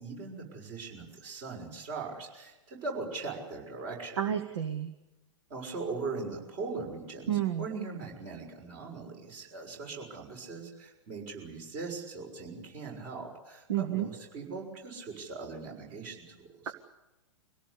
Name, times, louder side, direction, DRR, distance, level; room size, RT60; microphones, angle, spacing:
voice 1, 0.0-4.2 5.5-16.7, right 4 dB, 40° right, 1 dB, 6.4 m, -40 dB
voice 2, 4.2-4.9 7.3-7.6 13.7-14.1 16.7-16.8, right 10 dB, 60° right, 9 dB, 1.3 m, -30 dB
25.0 x 17.5 x 8.5 m, 1.0 s
figure-of-eight pair, 105°, 16 cm